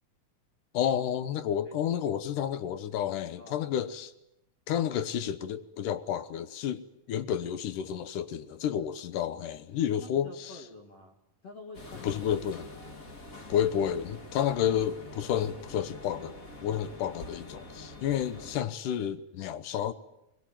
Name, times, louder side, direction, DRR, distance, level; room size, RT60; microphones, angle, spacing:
voice 1, 0.7-4.1 4.7-10.6 12.0-12.7 13.5-16.3 16.6-19.9, left 9 dB, 75° left, 2.6 m, -30 dB
voice 2, 3.4-3.7 10.0-11.2 11.4-12.3, left 2 dB, 50° left, 3.2 m, -48 dB
sound 1, 11.7-18.6, left 2 dB, 30° left, 1.9 m, -46 dB
23.0 x 21.5 x 9.1 m
omnidirectional pair, 3.7 m